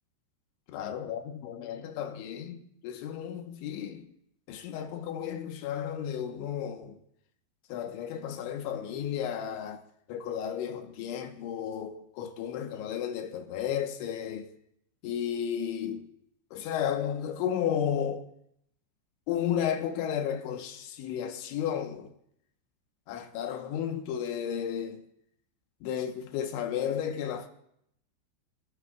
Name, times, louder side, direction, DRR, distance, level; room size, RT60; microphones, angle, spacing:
voice 1, 0.7-4.1 4.5-7.0 7.7-9.8 10.1-14.5 15.0-16.1 16.5-18.2 19.3-22.1 23.1-25.1 25.8-27.5, left 9 dB, 75° left, 3.3 m, -33 dB
28.0 x 14.5 x 2.4 m
omnidirectional pair, 5.8 m